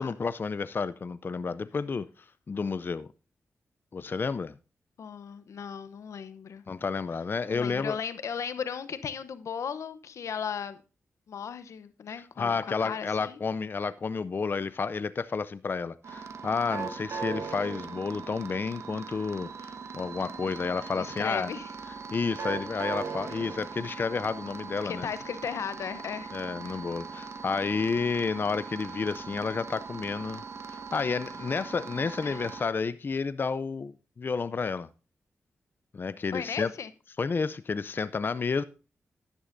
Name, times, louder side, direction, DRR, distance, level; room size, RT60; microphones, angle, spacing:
voice 1, 0.0-3.1 3.9-4.5 6.7-8.0 12.1-21.5 22.1-25.1 26.3-30.4 30.7-34.9 35.9-36.7 37.2-38.6, left 5 dB, 45° left, 0.4 m, -31 dB
voice 2, 5.0-6.6 7.5-10.8 11.3-13.4 21.0-21.7 24.8-26.3 26.6-26.9 32.2-32.4 36.3-36.9, left 7 dB, 80° left, 0.7 m, -36 dB
sound 1, 16.0-32.6, right 5 dB, 70° right, 1.4 m, -40 dB
11.0 x 9.9 x 2.6 m
cardioid pair, 65°, 5 cm